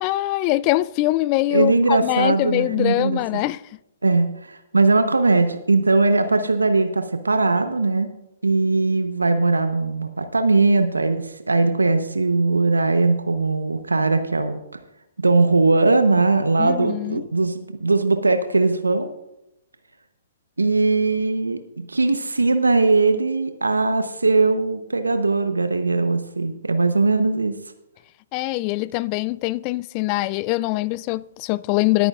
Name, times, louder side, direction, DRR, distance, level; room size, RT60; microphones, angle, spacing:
voice 1, 0.0-3.6 16.6-17.2 28.3-32.1, left 18 dB, 35° left, 0.3 m, -23 dB
voice 2, 1.5-3.2 4.0-8.1 8.4-14.6 15.2-19.1 20.6-27.5, right 3 dB, 90° right, 0.8 m, -20 dB
19.5 x 9.2 x 2.4 m
figure-of-eight pair, 125°, 0 cm